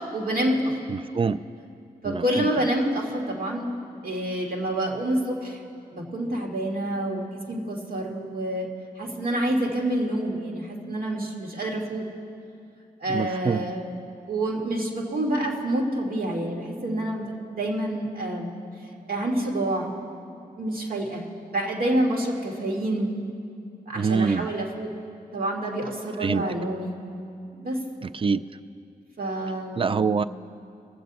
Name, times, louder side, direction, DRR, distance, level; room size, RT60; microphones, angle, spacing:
voice 1, 0.0-0.7 2.0-3.7 4.0-5.6 5.9-8.7 9.0-12.0 13.0-13.9 14.3-17.2 17.5-18.5 19.1-19.9 20.6-21.3 21.5-23.1 23.9-24.9 25.3-27.0 27.6-27.8 29.2-29.9, right 1 dB, 65° right, -1 dB, 1.9 m, -27 dB
voice 2, 0.9-1.4 2.0-2.5 13.1-13.7 23.9-24.5 26.2-26.5 28.0-28.4 29.8-30.2, right 5 dB, 35° right, 13 dB, 0.4 m, -25 dB
22.0 x 7.5 x 4.0 m, 2.5 s
cardioid pair, 60°, 16 cm